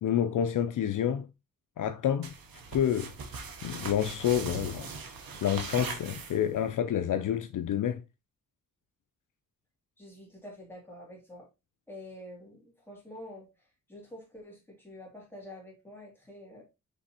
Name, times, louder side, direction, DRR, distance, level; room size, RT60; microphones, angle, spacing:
voice 1, 0.0-1.3 1.8-2.3 2.7-3.1 3.6-4.9 5.4-8.0, left 9 dB, 65° left, 0.5 m, -28 dB
sound 1, 2.2-6.7, right 4 dB, 85° right, 1.0 m, -40 dB
voice 2, 10.0-11.5 11.9-13.5 13.9-16.6, left 1 dB, 5° left, 2.3 m, -47 dB
5.2 x 3.4 x 2.8 m
wide cardioid pair, 100°, 34 cm